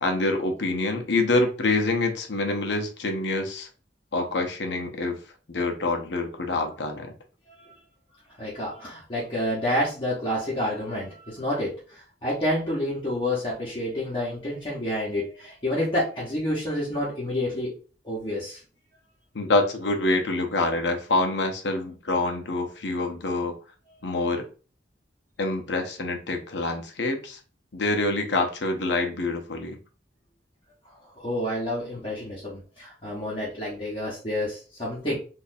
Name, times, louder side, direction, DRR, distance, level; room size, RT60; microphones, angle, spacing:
voice 1, 0.0-3.7 4.1-5.2 5.5-7.1 19.3-23.5 24.0-24.5 25.4-27.4 27.7-29.8, left 2 dB, 70° left, 5 dB, 0.7 m, -26 dB
voice 2, 8.4-17.8 18.0-18.6 31.2-35.2, left 1 dB, 30° left, -7 dB, 1.0 m, -29 dB
4.0 x 2.6 x 2.6 m, 0.37 s
head